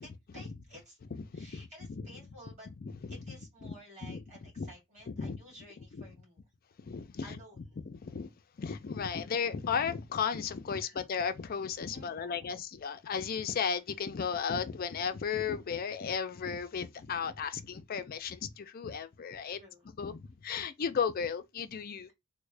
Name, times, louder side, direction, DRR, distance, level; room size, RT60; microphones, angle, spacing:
voice 1, 0.0-1.0 1.3-2.7 3.1-6.4 7.2-7.6 10.8-11.1 11.9-12.6 19.5-19.8, equal, 35° right, 2.1 m, -53 dB
voice 2, 1.1-1.7 2.0-2.2 2.8-3.4 3.6-3.7 4.0-4.2 4.6-4.7 5.2-5.4 5.9-6.0 6.8-7.4 7.9-8.3 8.6-19.6 20.0-22.1, left 6 dB, 45° left, 0.4 m, -35 dB
3.5 x 2.1 x 3.2 m
head